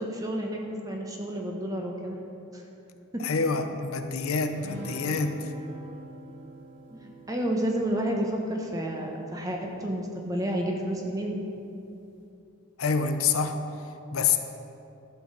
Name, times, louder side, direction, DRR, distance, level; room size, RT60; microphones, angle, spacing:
voice 1, 0.0-2.2 2.5-2.6 3.1-3.2 6.9-11.4, right 1 dB, 15° right, 1 dB, 1.1 m, -30 dB
voice 2, 3.2-5.4 12.8-13.6 14.1-14.4, left 5 dB, 85° left, 7 dB, 0.7 m, -26 dB
sound 1, 4.5-10.1, right 1 dB, 55° right, 2.5 m, -45 dB
11.5 x 6.2 x 6.7 m, 2.8 s
head